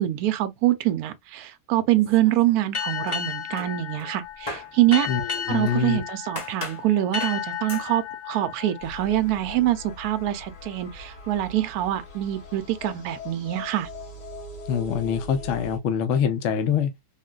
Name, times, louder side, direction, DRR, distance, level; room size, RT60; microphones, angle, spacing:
voice 1, 0.0-5.1 5.5-13.9, right 14 dB, 70° right, 1.0 m, -24 dB
sound 1, 2.0-2.7 3.1-5.9 6.4-6.9 7.2-7.4 7.7-7.9, left 2 dB, 15° left, 1.0 m, -38 dB
sound 2, 2.7-10.0, left 8 dB, 45° left, 0.4 m, -34 dB
voice 2, 5.1-6.0 14.7-16.9, left 7 dB, 60° left, 0.8 m, -25 dB
sound 3, 8.8-15.8, left 2 dB, 85° left, 1.9 m, -41 dB
3.7 x 2.1 x 2.2 m
omnidirectional pair, 1.8 m